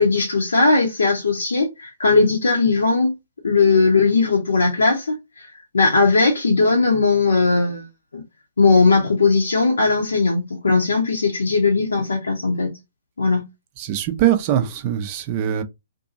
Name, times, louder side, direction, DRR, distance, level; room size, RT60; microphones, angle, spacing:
voice 1, 0.0-3.1 3.4-5.5 5.7-7.8 8.1-8.2 8.6-12.7 13.2-13.4, left 4 dB, 75° left, 0.7 m, -18 dB
voice 2, 13.8-15.6, right 11 dB, 35° right, 0.5 m, -21 dB
2.7 x 2.6 x 2.6 m
figure-of-eight pair, 125°, 0 cm